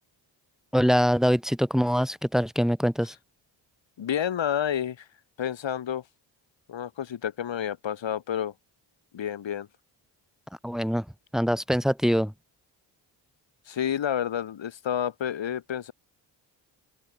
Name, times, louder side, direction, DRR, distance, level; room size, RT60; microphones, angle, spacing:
voice 1, 0.7-3.1 10.6-11.1 11.3-12.3, equal, ahead, 5.4 m, -23 dB
voice 2, 4.0-5.1 5.4-6.0 6.7-8.5 9.1-9.7 13.7-15.9, left 9 dB, 70° left, 6.9 m, -29 dB
open air
cardioid pair, 70°, 46 cm